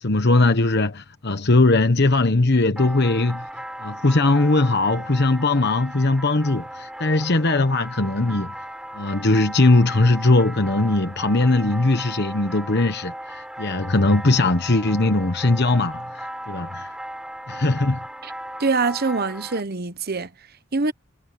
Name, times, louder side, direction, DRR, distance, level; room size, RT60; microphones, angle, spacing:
voice 1, 0.0-3.4 3.8-8.5 8.9-16.9 17.5-18.0, left 2 dB, 50° left, 1.2 m, -20 dB
sound 1, 2.8-19.6, right 1 dB, 5° right, 5.1 m, -36 dB
voice 2, 18.6-20.3 20.7-20.9, right 4 dB, 45° right, 1.0 m, -24 dB
head